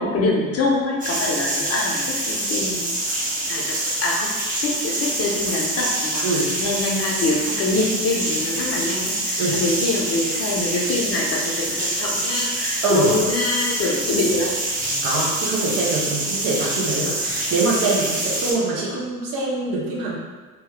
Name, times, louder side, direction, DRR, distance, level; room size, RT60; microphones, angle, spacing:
voice 1, 0.0-3.0 3.4-4.3 4.6-6.3 6.6-14.6, left 2 dB, 35° left, -2 dB, 0.7 m, -24 dB
sound 1, 1.0-18.5, right 1 dB, 20° right, 0.9 m, -25 dB
voice 2, 15.0-20.2, right 3 dB, 55° right, -3 dB, 0.9 m, -24 dB
2.9 x 2.3 x 3.3 m, 1.4 s
hypercardioid pair, 65°, 40 cm